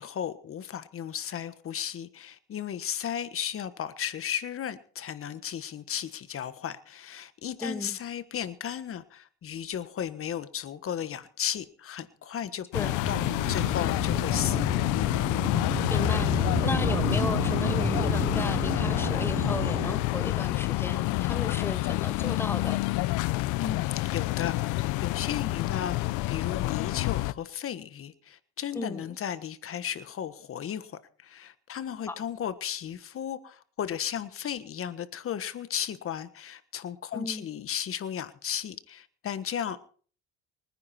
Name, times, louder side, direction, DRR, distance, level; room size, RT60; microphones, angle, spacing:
voice 1, 0.0-13.2 13.5-14.9 23.6-39.8, left 9 dB, 45° left, 1.4 m, -35 dB
voice 2, 7.6-8.0 12.7-13.0 15.9-22.8 28.7-29.2 32.1-32.2 37.1-37.5, left 2 dB, 5° left, 1.1 m, -35 dB
sound 1, 12.7-27.3, left 19 dB, 75° left, 0.7 m, -28 dB
sound 2, 13.0-19.9, right 2 dB, 20° right, 6.6 m, -32 dB
25.0 x 9.8 x 4.4 m
supercardioid pair, 95°, 31 cm